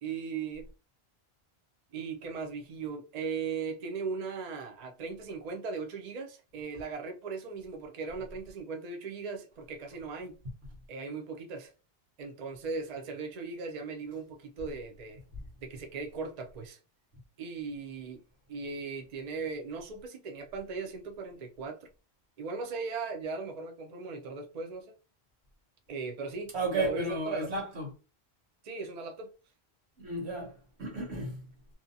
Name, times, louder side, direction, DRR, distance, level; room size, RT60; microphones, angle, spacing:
voice 1, 0.0-0.7 1.9-10.4 10.9-11.7 12.2-15.2 15.6-16.8 17.4-18.2 18.5-21.9 22.4-24.9 25.9-27.5 28.6-29.3, right 4 dB, 50° right, 0.6 m, -38 dB
voice 2, 26.5-27.9 30.0-30.5 30.8-31.4, right 2 dB, 85° right, 1.3 m, -33 dB
2.7 x 2.2 x 2.6 m
omnidirectional pair, 1.1 m